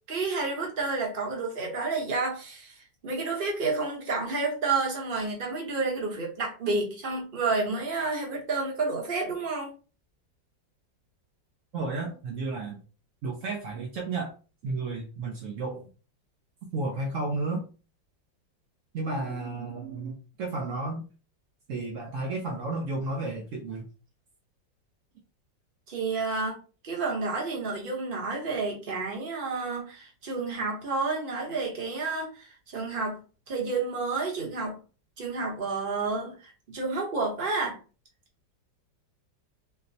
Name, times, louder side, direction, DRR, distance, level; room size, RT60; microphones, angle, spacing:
voice 1, 0.1-2.8 3.0-9.7 25.9-26.6 26.8-34.8 35.2-37.8, right 3 dB, 40° right, -1 dB, 0.8 m, -30 dB
voice 2, 11.7-12.8 13.2-14.3 14.6-15.9 16.7-17.6 18.9-21.0 21.7-23.9, right 3 dB, 75° right, 0 dB, 0.7 m, -32 dB
4.3 x 2.0 x 2.6 m, 0.35 s
omnidirectional pair, 2.0 m